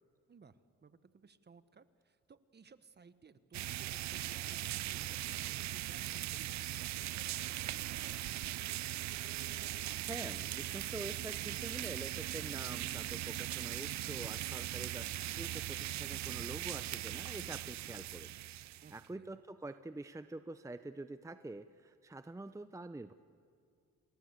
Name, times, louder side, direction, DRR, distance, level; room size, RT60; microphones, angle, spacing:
voice 1, 0.3-8.5 18.8-19.4, right 5 dB, 35° right, 13 dB, 1.3 m, -60 dB
sound 1, 3.5-19.1, right 15 dB, 65° right, 0.6 m, -40 dB
voice 2, 10.0-18.3 18.6-23.1, right 2 dB, 10° right, 11 dB, 0.7 m, -46 dB
29.0 x 19.5 x 8.1 m, 2.3 s
cardioid pair, 90°, 30 cm